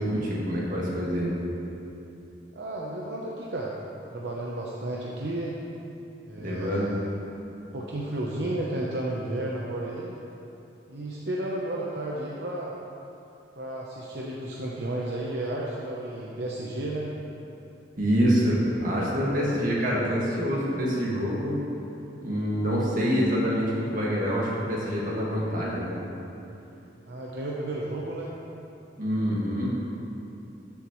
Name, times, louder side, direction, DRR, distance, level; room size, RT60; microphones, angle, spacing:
voice 1, 0.0-1.3 6.4-6.9 18.0-21.6 22.2-25.9 29.0-29.8, equal, 50° right, -5 dB, 1.9 m, -26 dB
voice 2, 2.5-3.7 4.1-5.6 6.3-7.1 7.7-10.2 10.9-12.7 13.6-17.1 27.1-28.3, right 1 dB, 70° right, -4 dB, 0.8 m, -32 dB
13.5 x 7.3 x 3.1 m, 2.8 s
head